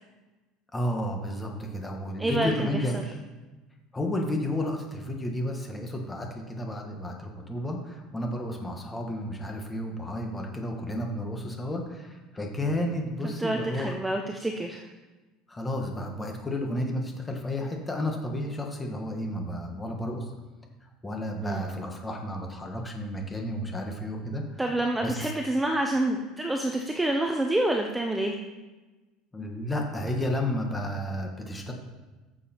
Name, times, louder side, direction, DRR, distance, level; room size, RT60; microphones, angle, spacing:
voice 1, 0.7-3.0 3.9-13.9 15.5-20.2 21.0-24.5 25.0-25.3 29.3-31.7, left 1 dB, 10° left, 2 dB, 1.5 m, -32 dB
voice 2, 2.2-3.0 13.2-14.8 21.4-21.7 24.6-28.3, right 1 dB, 5° right, 2 dB, 0.7 m, -28 dB
14.0 x 6.8 x 4.4 m, 1.2 s
cardioid pair, 155°, 0 cm